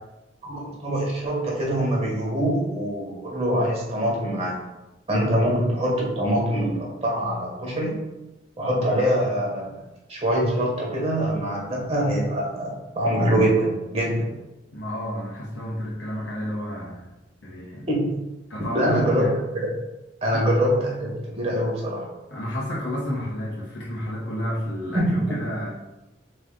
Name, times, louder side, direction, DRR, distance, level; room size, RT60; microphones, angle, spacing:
voice 1, 0.4-4.6 5.1-8.0 8.6-9.8 10.1-14.4 17.9-18.2 18.7-19.3 19.5-19.7 20.2-22.1 24.9-25.1, equal, 35° right, -3 dB, 0.9 m, -24 dB
voice 2, 14.7-17.1 17.4-17.9 18.5-19.3 20.3-20.4 22.3-25.7, left 1 dB, 85° left, -5 dB, 1.1 m, -31 dB
3.6 x 3.2 x 3.7 m, 1.0 s
head